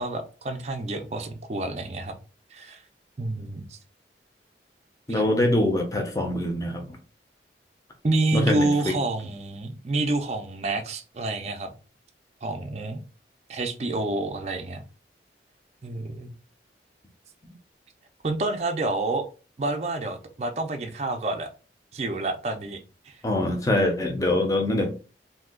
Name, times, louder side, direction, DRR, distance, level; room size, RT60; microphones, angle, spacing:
voice 1, 0.0-2.2 2.5-2.8 3.2-3.8 8.0-11.7 12.4-13.0 13.5-14.8 15.8-16.3 18.2-19.3 19.6-21.5 21.9-22.8 23.1-23.2, right 2 dB, 35° right, 0.4 m, -28 dB
voice 2, 5.1-6.9 8.3-8.9 23.2-24.9, left 1 dB, 20° left, 0.6 m, -24 dB
2.6 x 2.3 x 3.6 m
head